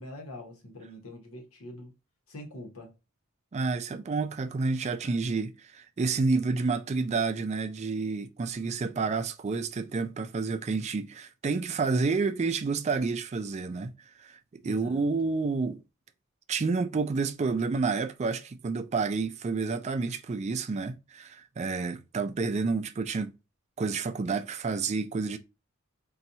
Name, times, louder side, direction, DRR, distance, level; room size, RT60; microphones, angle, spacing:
voice 1, 0.0-1.9 2.3-2.9 14.6-15.1, left 1 dB, 80° left, 1.1 m, -44 dB
voice 2, 3.5-13.9 14.2-14.4 14.6-15.8 16.5-23.3 23.8-25.4, right 4 dB, 30° right, 0.3 m, -29 dB
4.1 x 2.3 x 2.7 m
head